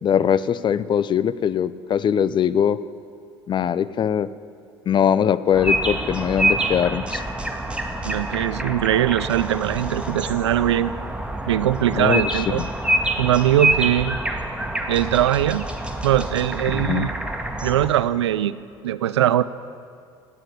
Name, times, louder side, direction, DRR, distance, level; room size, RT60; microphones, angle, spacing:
voice 1, 0.0-2.8 3.5-4.3 4.9-7.2 11.9-12.7 16.7-17.1, left 8 dB, 30° left, 16 dB, 0.6 m, -21 dB
sound 1, 5.5-17.9, right 1 dB, 5° right, 2.0 m, -26 dB
voice 2, 8.0-10.9 11.5-12.6 13.2-14.2 14.9-15.7 16.0-17.1 17.6-18.6 18.8-19.4, right 12 dB, 75° right, 16 dB, 0.5 m, -21 dB
18.0 x 8.9 x 8.8 m, 2.3 s
figure-of-eight pair, 65°, 15 cm